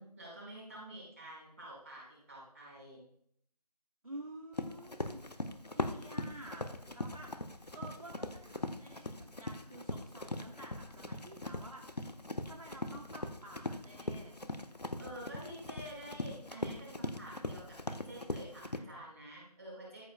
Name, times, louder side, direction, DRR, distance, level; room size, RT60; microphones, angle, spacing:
voice 1, 0.0-3.0 15.0-20.0, right 1 dB, 20° right, -6 dB, 5.2 m, -49 dB
voice 2, 4.0-5.2 5.7-7.3 7.7-12.1 12.4-14.4, right 1 dB, 55° right, -1 dB, 1.8 m, -50 dB
Run, 4.5-18.8, left 2 dB, 80° left, 1.2 m, -40 dB
14.0 x 11.5 x 2.3 m, 0.67 s
figure-of-eight pair, 170°, 21 cm